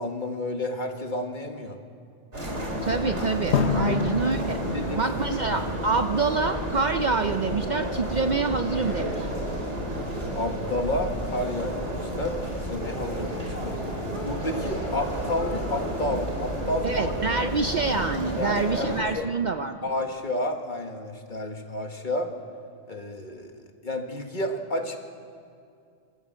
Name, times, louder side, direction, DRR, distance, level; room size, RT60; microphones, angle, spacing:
voice 1, 0.0-1.8 3.8-4.0 4.6-5.1 10.3-13.8 14.2-17.1 18.4-19.2 19.8-22.3 22.9-25.0, left 1 dB, 45° left, 4 dB, 1.7 m, -31 dB
sound 1, 2.3-19.0, equal, 85° right, 3.7 m, -31 dB
voice 2, 2.8-4.6 5.0-9.3 16.8-19.8, right 4 dB, 50° right, 8 dB, 0.6 m, -26 dB
Drum, 3.5-6.4, left 5 dB, 75° left, 1.4 m, -29 dB
26.5 x 13.5 x 8.1 m, 2.4 s
omnidirectional pair, 1.2 m